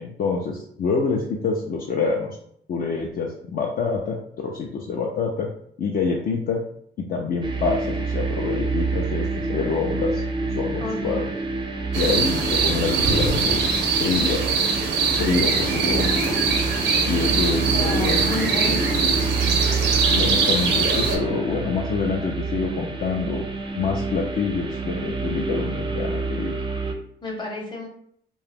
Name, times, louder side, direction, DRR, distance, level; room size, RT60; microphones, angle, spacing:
voice 1, 0.0-2.4 2.7-5.5 5.8-6.6 7.0-11.3 12.0-14.4 15.2-16.2 17.1-18.2 20.1-23.4 23.7-26.6, left 4 dB, 55° left, -1 dB, 0.4 m, -26 dB
sound 1, 7.4-26.9, right 3 dB, 25° right, 0.4 m, -28 dB
voice 2, 10.8-11.2 15.4-16.2 17.2-19.0 27.2-27.9, left 1 dB, 25° left, -1 dB, 0.8 m, -31 dB
sound 2, 11.9-21.2, right 4 dB, 80° right, 0.6 m, -22 dB
2.3 x 2.0 x 3.3 m, 0.67 s
cardioid pair, 65°, 18 cm